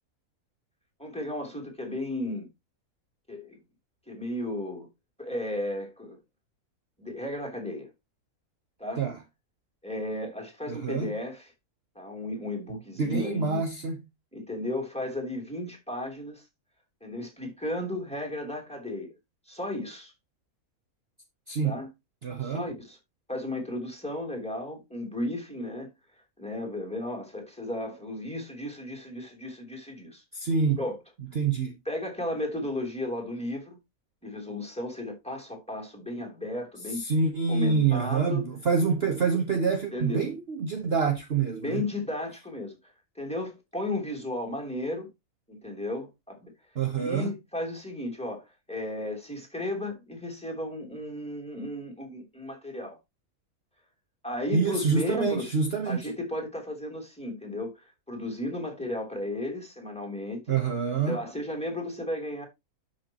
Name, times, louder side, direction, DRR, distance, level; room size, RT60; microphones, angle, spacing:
voice 1, 1.0-2.5 3.3-3.6 4.1-4.9 5.2-6.2 7.0-7.9 8.8-9.0 9.8-11.5 11.9-13.6 14.3-16.5 17.0-19.1 19.5-20.1 21.6-21.9 22.4-23.0 23.3-25.9 26.4-30.2 30.8-31.0 31.8-33.8 34.2-37.0 37.5-38.5 39.9-40.3 41.6-45.1 45.5-46.5 47.0-53.0 54.2-55.5 55.8-60.6 61.1-62.5, left 1 dB, 5° left, 3.2 m, -34 dB
voice 2, 10.7-11.1 13.0-14.0 21.5-21.7 22.2-22.6 30.3-30.8 31.3-31.8 36.9-41.9 46.7-47.3 54.5-56.0 60.5-61.2, right 5 dB, 45° right, 1.2 m, -26 dB
12.5 x 6.0 x 2.9 m
omnidirectional pair, 1.5 m